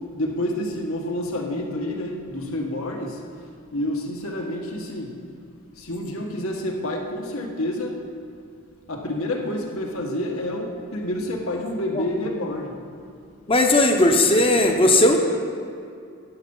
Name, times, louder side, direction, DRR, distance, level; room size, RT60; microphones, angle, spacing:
voice 1, 0.1-3.2 3.7-5.2 5.8-8.0 8.9-12.7, left 1 dB, 75° left, 1 dB, 1.5 m, -28 dB
voice 2, 13.5-15.2, left 1 dB, 25° left, 3 dB, 0.8 m, -17 dB
11.5 x 9.0 x 5.5 m, 2.4 s
head